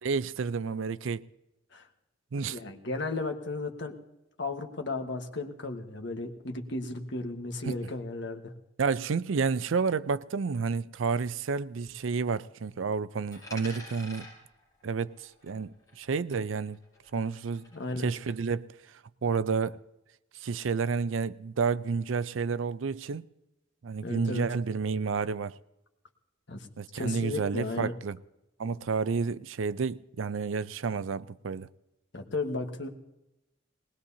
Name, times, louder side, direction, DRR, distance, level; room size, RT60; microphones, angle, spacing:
voice 1, 0.0-1.2 2.3-2.6 7.6-7.8 8.8-14.3 14.8-16.8 17.1-17.6 18.0-18.7 19.2-19.8 20.4-23.3 23.8-25.6 26.8-28.2 28.6-31.7, right 5 dB, 85° right, 0.5 m, -30 dB
voice 2, 2.5-3.9 4.4-8.5 17.7-18.1 24.0-24.4 26.5-26.7 26.9-27.9 32.1-32.9, left 2 dB, 65° left, 1.4 m, -34 dB
Coin (dropping), 13.3-16.1 16.3-18.3, left 2 dB, 20° left, 7.7 m, -49 dB
20.5 x 19.5 x 2.8 m
head